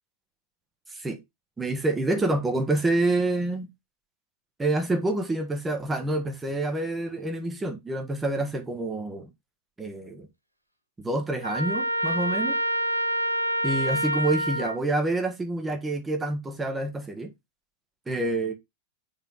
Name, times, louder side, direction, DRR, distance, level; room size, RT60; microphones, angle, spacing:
voice 1, 0.9-1.2 1.6-3.7 4.6-9.3 9.8-10.3 11.0-12.6 13.6-17.3 18.1-18.5, right 2 dB, 10° right, 1.5 m, -27 dB
Trumpet, 11.4-14.8, right 1 dB, 90° right, 0.7 m, -27 dB
8.9 x 3.9 x 3.7 m
figure-of-eight pair, 90°, 0 cm